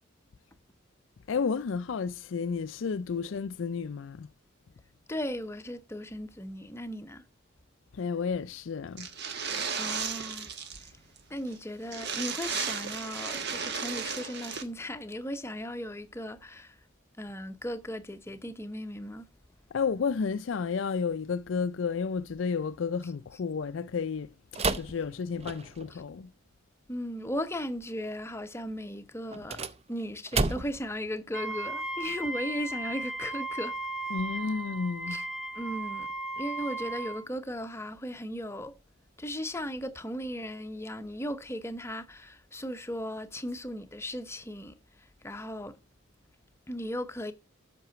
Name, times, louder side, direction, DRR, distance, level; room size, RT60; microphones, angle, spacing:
voice 1, 1.3-4.3 7.9-9.1 19.7-26.3 34.1-35.2, left 5 dB, 75° left, 0.4 m, -32 dB
voice 2, 5.1-7.2 9.8-10.5 10.8-11.0 11.3-16.8 17.2-19.3 26.9-33.8 35.1-35.2 35.5-36.1 36.4-38.7 39.2-45.8 46.7-47.3, equal, 15° left, 0.8 m, -37 dB
sound 1, 9.0-10.9 11.2-11.3 11.5-11.6 11.9-14.6, right 6 dB, 60° right, 1.3 m, -34 dB
sound 2, 24.5-25.9 29.3-30.9, right 3 dB, 30° right, 0.6 m, -32 dB
Wind instrument woodwind instrument, 31.3-37.3, right 2 dB, ahead, 1.2 m, -36 dB
8.0 x 6.0 x 5.7 m
head